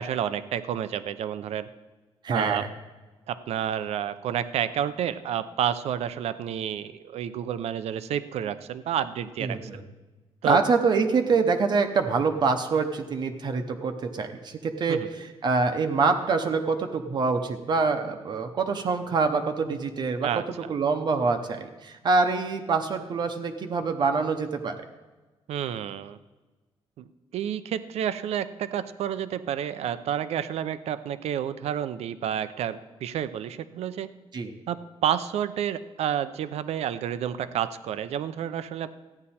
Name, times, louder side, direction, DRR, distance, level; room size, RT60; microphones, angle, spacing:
voice 1, 0.0-1.7 2.3-2.6 3.3-9.7 10.4-10.6 14.9-15.1 20.2-20.4 25.5-26.2 27.0-27.1 27.3-34.1 34.7-38.9, right 9 dB, 80° right, 13 dB, 0.6 m, -30 dB
voice 2, 2.2-2.7 9.4-9.8 10.4-20.3 20.7-24.8 34.3-34.5, right 4 dB, 45° right, 6 dB, 0.8 m, -25 dB
14.5 x 9.8 x 4.3 m, 1.2 s
wide cardioid pair, 175°, 11 cm